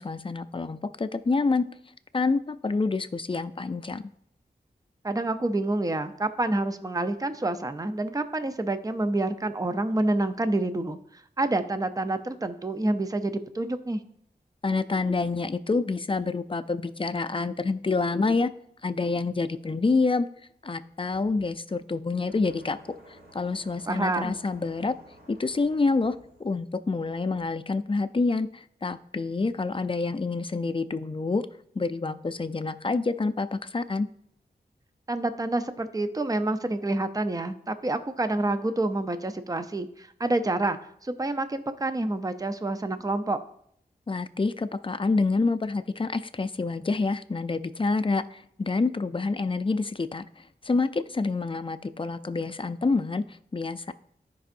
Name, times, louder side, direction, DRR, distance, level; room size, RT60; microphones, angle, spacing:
voice 1, 0.0-1.6 2.1-4.1 14.6-18.5 18.8-20.3 20.6-22.8 23.1-24.9 25.3-31.5 31.8-34.1 44.1-53.9, left 3 dB, 30° left, 12 dB, 0.4 m, -27 dB
voice 2, 5.0-11.0 11.4-14.0 23.9-24.4 35.1-43.4, right 2 dB, 20° right, 10 dB, 0.6 m, -28 dB
sound 1, 22.2-27.4, right 1 dB, 70° right, 1.8 m, -53 dB
13.0 x 5.5 x 2.6 m, 0.68 s
wide cardioid pair, 55°, 17 cm